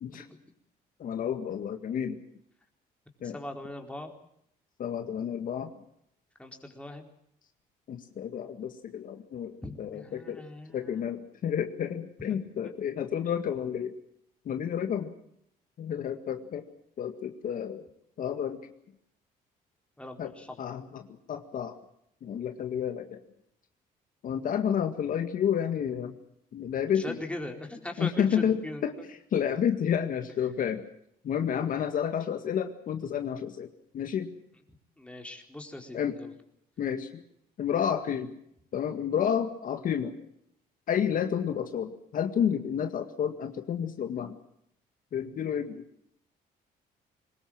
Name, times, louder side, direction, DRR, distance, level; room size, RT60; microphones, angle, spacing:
voice 1, 1.0-2.2 3.2-3.4 4.8-5.7 7.9-10.4 10.7-13.9 14.5-15.1 15.8-16.6 17.0-17.9 18.2-18.7 20.2-21.8 22.2-23.2 24.2-26.1 26.5-27.2 28.0-28.9 29.3-30.9 31.2-34.3 35.9-36.2 36.8-37.2 37.6-38.3 38.7-40.1 40.9-44.4 45.1-45.8, left 8 dB, 60° left, 7 dB, 2.0 m, -30 dB
voice 2, 3.3-4.1 6.4-7.1 9.6-11.0 12.3-12.4 12.6-12.7 20.0-20.8 26.9-29.1 35.0-36.3, left 1 dB, 5° left, 3 dB, 4.3 m, -40 dB
23.0 x 20.0 x 7.5 m, 0.72 s
cardioid pair, 110°, 16 cm